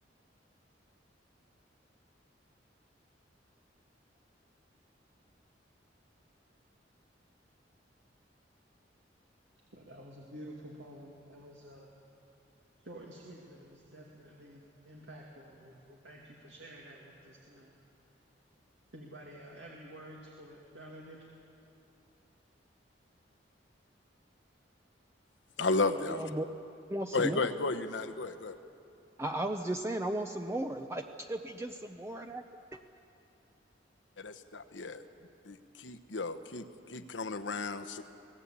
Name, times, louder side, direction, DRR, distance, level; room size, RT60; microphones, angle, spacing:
voice 1, 9.7-11.9 12.8-17.7 18.9-21.2, right 1 dB, 75° right, -2 dB, 2.4 m, -50 dB
voice 2, 25.6-26.2 27.1-28.6 34.2-35.0 35.4-38.0, left 3 dB, 90° left, 10 dB, 1.1 m, -33 dB
voice 3, 26.1-26.5 26.9-27.4 29.2-32.4, right 1 dB, 15° right, 5 dB, 0.6 m, -35 dB
23.0 x 18.0 x 8.5 m, 2.7 s
head